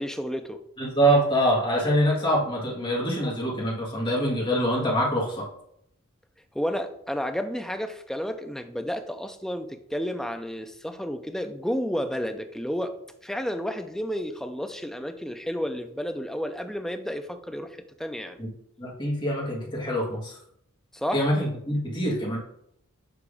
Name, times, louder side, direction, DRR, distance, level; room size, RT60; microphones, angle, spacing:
voice 1, 0.0-0.6 6.5-13.0 13.2-18.4 20.9-21.3, equal, ahead, 6 dB, 0.3 m, -31 dB
voice 2, 0.8-5.5 18.4-18.5 18.8-20.4 21.1-22.4, equal, 20° left, -3 dB, 1.5 m, -25 dB
7.0 x 2.9 x 4.8 m, 0.74 s
head